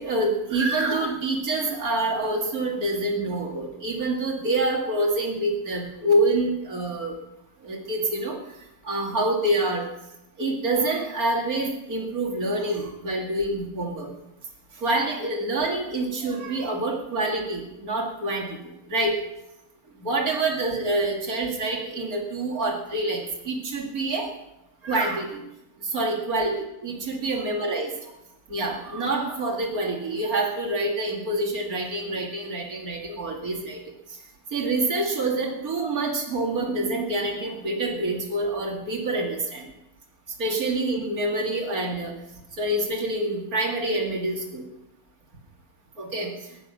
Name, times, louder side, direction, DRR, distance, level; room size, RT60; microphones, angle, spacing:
voice 1, 0.0-7.2 7.6-8.4 8.9-9.8 10.4-14.1 14.8-18.6 18.9-19.2 20.0-24.3 24.8-25.4 25.9-26.5 26.8-27.9 28.5-33.8 34.5-39.7 40.4-42.2 42.6-44.6 46.0-46.3, right 2 dB, 75° right, 0 dB, 2.8 m, -26 dB
17.0 x 10.5 x 6.2 m, 0.93 s
omnidirectional pair, 1.6 m